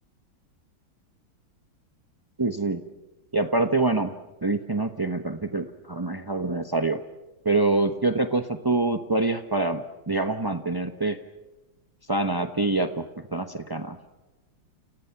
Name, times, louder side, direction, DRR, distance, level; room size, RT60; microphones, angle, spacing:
voice 1, 2.4-2.8 3.3-4.1 4.4-7.0 7.4-11.2 12.1-13.0 13.3-14.0, right 2 dB, 20° right, 7 dB, 0.5 m, -25 dB
29.5 x 29.0 x 5.9 m, 1.1 s
omnidirectional pair, 2.3 m